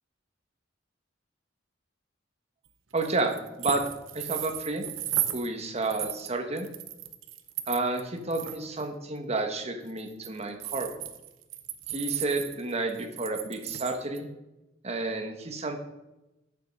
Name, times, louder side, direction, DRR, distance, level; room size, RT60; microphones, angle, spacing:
voice 1, 2.9-3.9 4.1-4.9 5.3-6.7 7.7-10.9 11.9-14.3 14.8-15.8, right 2 dB, 35° right, 5 dB, 1.2 m, -31 dB
sound 1, 3.0-5.5 5.8-8.0 8.3-8.9 9.9-14.2, right 12 dB, 85° right, 0.8 m, -35 dB
9.0 x 7.0 x 5.3 m, 0.96 s
head